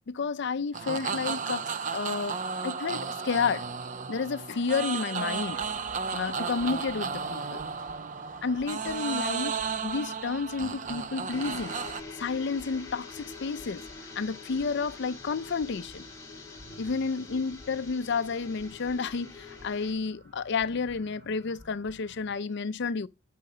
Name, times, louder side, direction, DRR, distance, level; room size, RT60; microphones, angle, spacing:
voice 1, 0.1-2.4 2.6-3.7 4.1-5.6 6.1-7.6 8.4-11.7 12.2-13.8 14.2-16.0 16.8-23.1, left 5 dB, 55° left, 0.5 m, -31 dB
sound 1, 0.7-12.0, right 5 dB, 40° right, 0.4 m, -34 dB
sound 2, 5.3-22.3, equal, 55° right, 2.3 m, -54 dB
sound 3, 11.3-19.9, left 3 dB, 15° left, 3.2 m, -45 dB
9.4 x 6.7 x 4.9 m
head